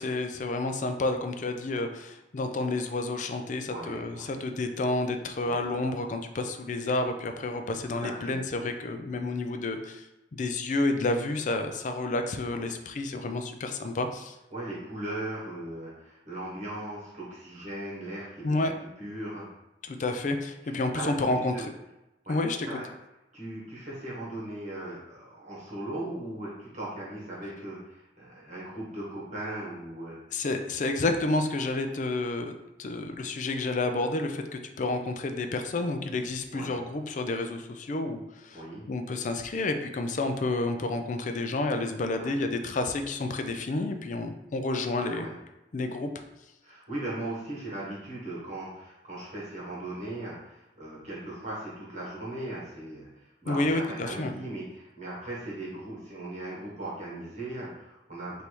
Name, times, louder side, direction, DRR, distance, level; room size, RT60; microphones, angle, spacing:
voice 1, 0.0-10.1 10.4-14.4 18.4-18.7 19.8-21.5 22.3-22.7 30.3-38.6 38.9-45.3 45.7-46.1 53.5-54.3, left 2 dB, 45° left, 6 dB, 0.4 m, -30 dB
voice 2, 3.7-4.4 5.4-5.7 8.0-8.4 12.5-12.7 14.5-19.5 20.6-21.6 22.2-22.3 22.7-22.8 23.3-30.2 36.5-36.8 38.5-38.8 42.1-42.4 45.0-45.3 46.6-53.1 53.4-58.4, right 1 dB, 40° right, -6 dB, 1.3 m, -38 dB
3.3 x 2.7 x 4.5 m, 0.95 s
head